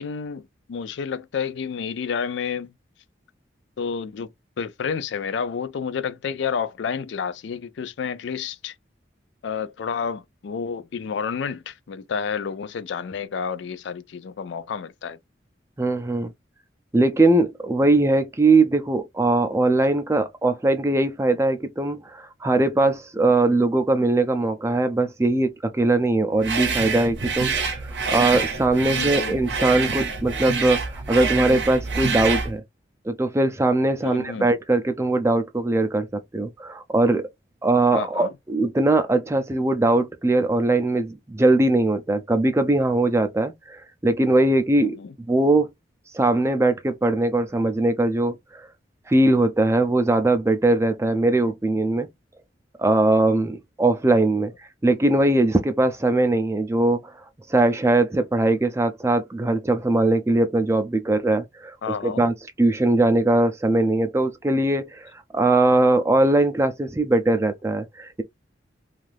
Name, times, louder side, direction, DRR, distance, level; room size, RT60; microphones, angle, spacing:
voice 1, 0.0-2.7 3.8-4.3 4.6-8.7 9.4-15.2 28.9-29.4 34.0-34.5 37.9-38.3 44.8-45.1 54.4-54.5 61.8-62.3, left 6 dB, 75° left, 0.4 m, -30 dB
voice 2, 15.8-16.3 16.9-32.6 33.1-37.3 37.6-45.0 45.3-45.7 46.1-48.4 49.1-52.1 52.8-54.5 54.8-57.0 57.5-61.8 62.0-68.2, right 2 dB, 15° right, 0.4 m, -21 dB
sound 1, 26.4-32.5, right 4 dB, 70° right, 0.7 m, -26 dB
2.6 x 2.4 x 3.2 m
head